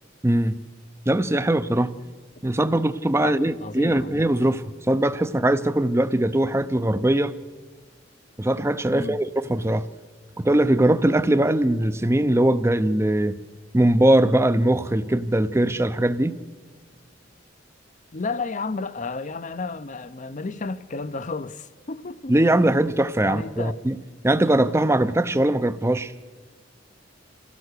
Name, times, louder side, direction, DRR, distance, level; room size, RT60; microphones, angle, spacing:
voice 1, 0.2-0.5 1.1-1.9 2.4-7.3 8.4-9.9 10.4-13.3 13.7-16.4 22.3-24.0 24.2-26.1, right 1 dB, 15° right, 0.6 m, -21 dB
voice 2, 3.2-4.2 8.9-9.2 18.1-22.4 22.7-22.8 23.2-23.8, left 3 dB, 40° left, 0.6 m, -32 dB
25.5 x 17.0 x 6.7 m
head